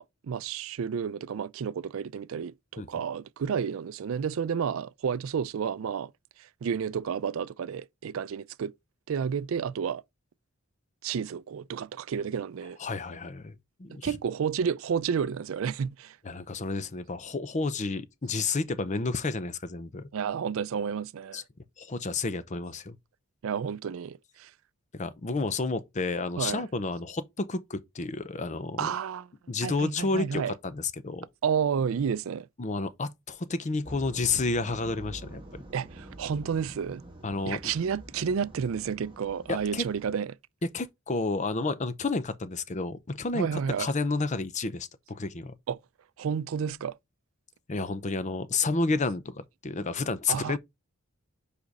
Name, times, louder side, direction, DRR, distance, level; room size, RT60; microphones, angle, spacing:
voice 1, 0.0-6.1 6.4-8.7 9.1-10.0 11.0-12.8 13.9-16.2 20.1-21.4 23.4-24.5 26.4-26.6 28.8-29.3 29.6-30.5 31.4-32.5 35.7-37.0 37.5-40.4 43.3-43.9 45.7-45.8 46.2-47.0 50.3-50.6, right 7 dB, 70° right, 0.4 m, -31 dB
voice 2, 12.8-13.5 13.8-14.2 16.2-20.1 21.3-21.4 21.8-23.0 24.9-28.9 29.5-31.3 32.6-35.6 37.2-37.6 39.5-39.8 40.6-45.5 47.7-50.6, left 3 dB, 35° left, 0.6 m, -31 dB
sound 1, 33.8-40.1, right 1 dB, 25° right, 1.3 m, -46 dB
5.0 x 5.0 x 4.0 m
head